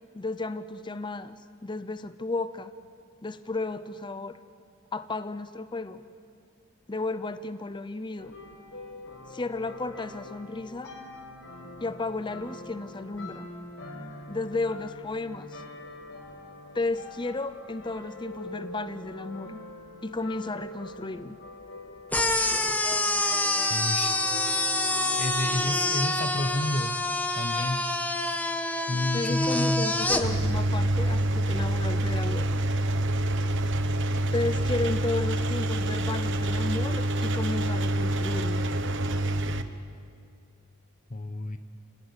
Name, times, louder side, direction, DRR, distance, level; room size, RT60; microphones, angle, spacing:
voice 1, 0.1-2.7 3.2-4.4 4.9-6.0 6.9-8.3 9.3-10.9 11.8-13.5 14.3-15.6 16.7-19.6 20.0-21.4 22.5-22.8 28.9-32.4 34.3-38.6, left 2 dB, 25° left, 12 dB, 0.7 m, -33 dB
sound 1, 8.2-26.8, left 2 dB, 75° left, 5.7 m, -44 dB
sound 2, 22.1-30.2, left 2 dB, 10° left, 1.4 m, -27 dB
voice 2, 23.7-24.2 25.2-27.0 27.3-27.8 28.9-30.1 41.1-41.6, left 1 dB, 40° left, 9 dB, 1.0 m, -30 dB
Engine, 30.2-39.6, right 1 dB, 65° right, 1.2 m, -26 dB
29.0 x 18.0 x 9.9 m, 2.3 s
head